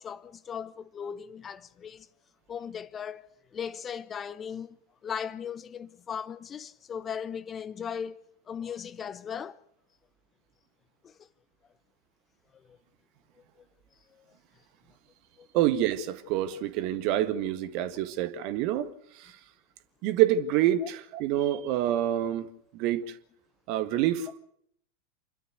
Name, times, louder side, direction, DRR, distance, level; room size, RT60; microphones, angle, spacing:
voice 1, 0.0-2.1 2.5-3.2 3.5-4.8 5.0-9.6 11.0-11.3 12.5-12.8 14.1-14.4 15.4-15.5 20.8-20.9, left 7 dB, 25° left, 0.8 m, -38 dB
voice 2, 15.5-18.9 19.1-19.4 20.0-22.5 22.7-23.2 23.7-24.4, right 12 dB, 45° right, 1.8 m, -27 dB
28.0 x 12.5 x 8.1 m
figure-of-eight pair, 90°, 0 cm